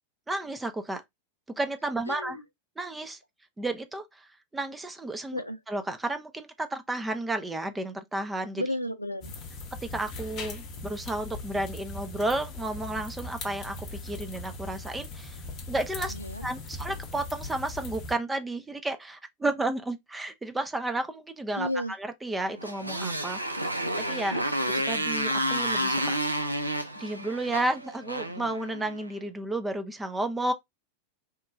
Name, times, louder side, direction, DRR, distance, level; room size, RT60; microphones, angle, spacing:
voice 1, 0.3-1.0 1.6-2.4 2.8-3.2 3.6-8.6 9.8-15.4 15.7-16.1 16.4-23.4 23.7-24.4 24.9-26.2 27.0-30.5, right 2 dB, 10° right, 0.4 m, -32 dB
voice 2, 2.1-2.4 5.3-5.6 8.6-9.3 16.1-16.5 21.6-21.9, left 1 dB, 85° left, 0.4 m, -32 dB
sound 1, 9.2-18.1, left 2 dB, 35° left, 0.7 m, -40 dB
Motorcycle, 22.6-29.1, right 1 dB, 85° right, 0.4 m, -30 dB
2.9 x 2.2 x 3.3 m
figure-of-eight pair, 90°, 0 cm